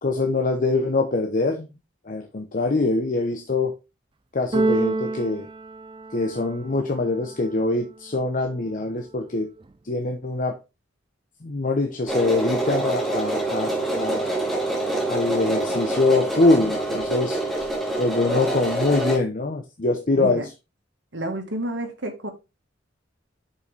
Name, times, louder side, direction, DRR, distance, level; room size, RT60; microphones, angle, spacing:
voice 1, 0.0-1.7 2.0-3.8 4.3-5.5 6.1-9.5 9.8-10.6 11.4-14.3 15.1-17.4 18.0-20.4, left 2 dB, 45° left, 0.9 m, -23 dB
Keyboard (musical), 4.5-6.6, right 2 dB, 25° right, 0.4 m, -26 dB
sound 1, 12.1-19.2, right 2 dB, ahead, 2.9 m, -26 dB
voice 2, 20.2-20.5 21.1-22.3, right 1 dB, 70° right, 1.8 m, -30 dB
6.9 x 5.5 x 3.4 m
head